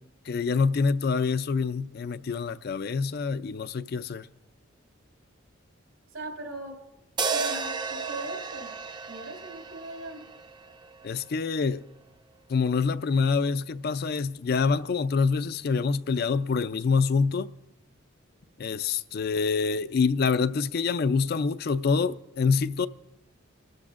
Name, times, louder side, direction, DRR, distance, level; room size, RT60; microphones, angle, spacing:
voice 1, 0.3-4.3 11.0-11.9 12.5-17.5 18.6-22.9, left 5 dB, 50° left, 0.4 m, -26 dB
voice 2, 6.1-6.7 7.3-8.7 9.1-10.2, right 2 dB, 85° right, 3.1 m, -39 dB
sound 1, 7.2-11.5, right 5 dB, 20° right, 0.5 m, -33 dB
29.5 x 13.0 x 2.5 m
head